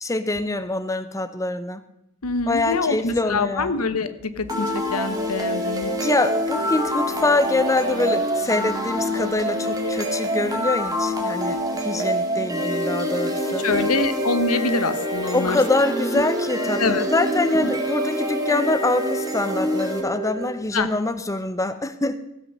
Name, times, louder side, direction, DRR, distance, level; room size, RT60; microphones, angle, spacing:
voice 1, 0.0-1.8 2.5-3.7 6.0-13.7 15.3-22.2, left 2 dB, 15° left, 11 dB, 0.6 m, -24 dB
voice 2, 2.2-5.9 13.6-15.6 16.8-17.0 17.6-17.7 20.7-20.9, left 3 dB, 75° left, 12 dB, 1.0 m, -25 dB
sound 1, 4.5-20.5, equal, 15° right, 2.4 m, -26 dB
15.5 x 8.0 x 6.6 m, 0.86 s
head